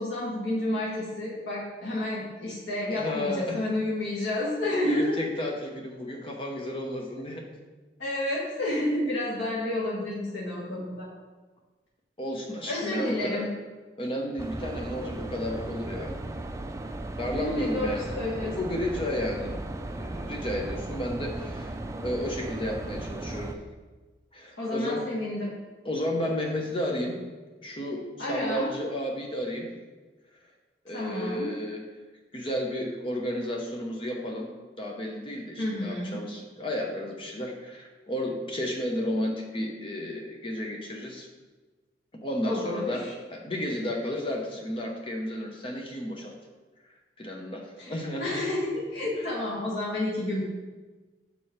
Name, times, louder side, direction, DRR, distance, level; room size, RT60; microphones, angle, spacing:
voice 1, 0.0-5.2 8.0-11.1 12.7-13.5 17.3-18.5 24.6-25.5 28.2-28.6 30.9-31.5 35.6-36.2 42.4-43.1 47.8-50.4, left 1 dB, 90° left, -7 dB, 1.6 m, -30 dB
voice 2, 2.9-3.7 4.8-7.5 12.2-13.5 14.0-16.1 17.2-19.6 19.9-23.5 24.3-25.1 25.8-27.2 27.6-29.7 30.8-31.8 32.3-34.5 34.8-41.3 42.2-46.3 47.2-48.4, left 1 dB, 30° left, 1 dB, 0.7 m, -32 dB
sound 1, 14.4-23.5, right 2 dB, 15° right, 0.3 m, -36 dB
6.9 x 4.7 x 4.4 m, 1.3 s
head